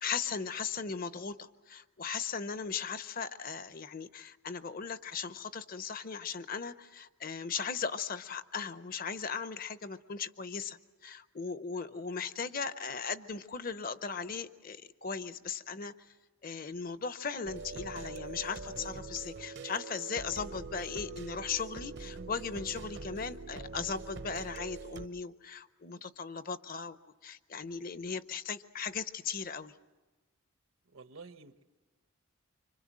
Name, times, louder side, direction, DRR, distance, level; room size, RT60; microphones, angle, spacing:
voice 1, 0.0-10.8 11.0-15.9 16.4-27.0 27.2-29.7, left 5 dB, 45° left, 13 dB, 0.7 m, -38 dB
sound 1, 17.5-25.1, right 4 dB, 55° right, 0.8 m, -44 dB
voice 2, 30.9-31.6, right 4 dB, 75° right, 9 dB, 1.2 m, -51 dB
26.0 x 25.0 x 7.5 m, 1.2 s
head